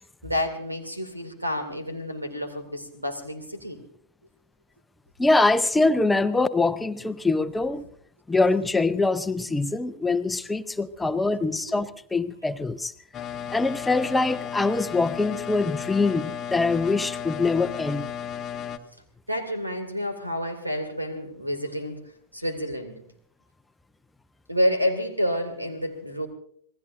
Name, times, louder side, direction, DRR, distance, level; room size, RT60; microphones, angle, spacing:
voice 1, 0.2-3.8 19.3-22.0 22.3-23.0 24.5-26.3, equal, 85° right, 9 dB, 2.3 m, -29 dB
voice 2, 5.2-7.8 8.3-12.9 13.5-18.1, left 3 dB, 10° left, 12 dB, 0.7 m, -24 dB
sound 1, 13.1-18.8, left 8 dB, 25° left, 1.1 m, -34 dB
27.0 x 19.0 x 2.6 m, 0.63 s
figure-of-eight pair, 90°, 0 cm